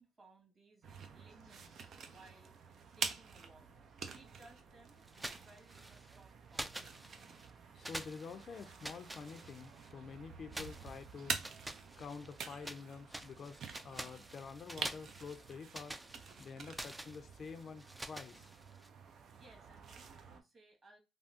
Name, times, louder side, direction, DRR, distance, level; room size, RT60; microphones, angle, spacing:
voice 1, 0.0-1.8 2.1-2.5 2.9-3.7 4.0-6.9 19.0-21.0, right 2 dB, 30° right, 1.7 m, -62 dB
sound 1, 0.8-20.4, right 5 dB, 60° right, 0.6 m, -48 dB
sound 2, 5.1-6.2 6.5-7.5 7.8-9.9 10.5-12.8 13.1-18.9, right 1 dB, 10° right, 0.4 m, -48 dB
voice 2, 7.7-11.4 12.0-16.0 16.4-18.5, left 5 dB, 55° left, 0.5 m, -48 dB
3.5 x 2.0 x 2.6 m
cardioid pair, 90°, 0 cm